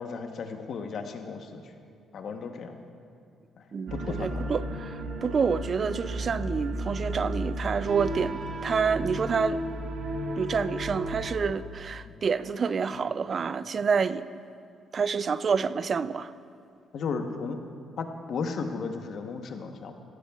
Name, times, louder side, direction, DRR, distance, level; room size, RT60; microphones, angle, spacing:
voice 1, 0.0-1.7 2.1-2.8 3.6-4.5 12.0-12.1 12.9-13.0 16.9-17.6 18.0-19.9, left 5 dB, 65° left, 0.9 m, -35 dB
voice 2, 3.7-9.6 10.4-14.3 14.9-16.3, right 5 dB, 45° right, 0.3 m, -28 dB
sound 1, 3.9-11.3, right 1 dB, 70° right, 1.2 m, -33 dB
15.5 x 14.0 x 2.4 m
cardioid pair, 90°, 0 cm